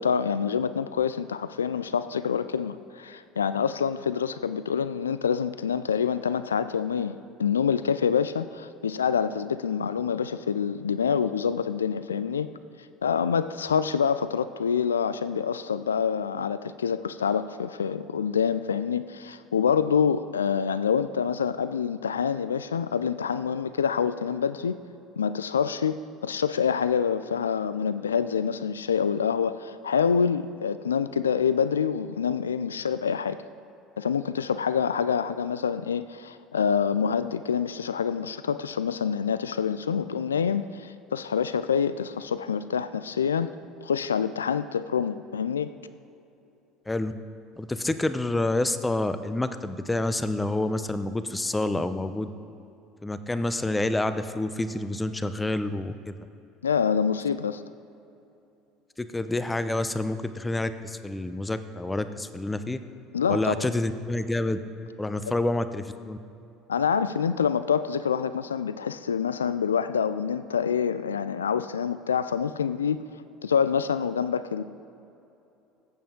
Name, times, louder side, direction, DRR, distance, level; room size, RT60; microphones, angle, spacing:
voice 1, 0.0-12.5 13.0-24.8 25.2-33.4 34.0-43.5 43.8-45.7 56.6-57.6 63.1-63.7 65.3-65.4 66.7-73.0 73.4-74.6, left 7 dB, 85° left, 14 dB, 0.3 m, -26 dB
voice 2, 47.6-52.3 53.0-56.1 59.0-62.8 63.3-64.6 65.0-66.2, left 2 dB, 10° left, 11 dB, 0.8 m, -28 dB
20.0 x 8.8 x 3.7 m, 2.8 s
figure-of-eight pair, 65°, 0 cm